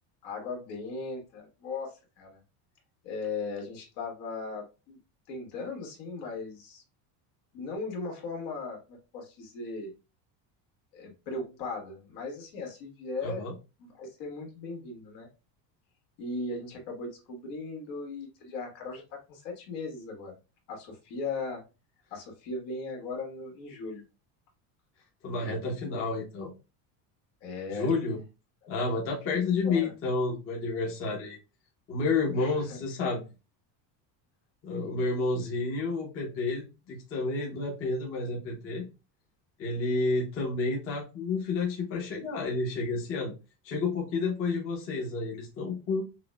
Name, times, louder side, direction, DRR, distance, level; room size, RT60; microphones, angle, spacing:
voice 1, 0.2-2.4 3.0-5.0 5.3-6.8 7.5-9.9 10.9-13.5 13.8-15.3 16.2-20.3 20.7-21.6 22.1-24.0 25.2-25.6 27.4-27.9 28.6-28.7 29.2-29.9 32.3-32.8 34.8-35.0, left 3 dB, 75° left, 1 dB, 1.6 m, -38 dB
voice 2, 13.2-13.5 25.2-26.5 27.7-28.2 28.7-31.4 31.9-33.2 34.6-38.9 39.6-43.3 43.6-46.0, left 3 dB, 30° left, -2 dB, 0.8 m, -30 dB
5.8 x 2.1 x 2.2 m, 0.29 s
cardioid pair, 180°, 44 cm